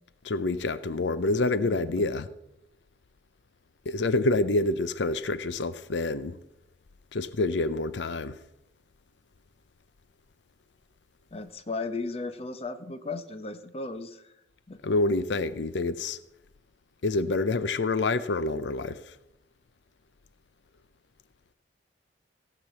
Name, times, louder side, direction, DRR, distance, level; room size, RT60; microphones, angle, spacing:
voice 1, 0.2-2.3 3.9-6.4 7.1-8.4 14.8-16.2 17.0-19.2, left 2 dB, 80° left, 0.6 m, -27 dB
voice 2, 1.6-2.2 11.3-14.3 14.7-14.8, left 3 dB, 35° left, 0.8 m, -36 dB
16.5 x 6.0 x 7.1 m
head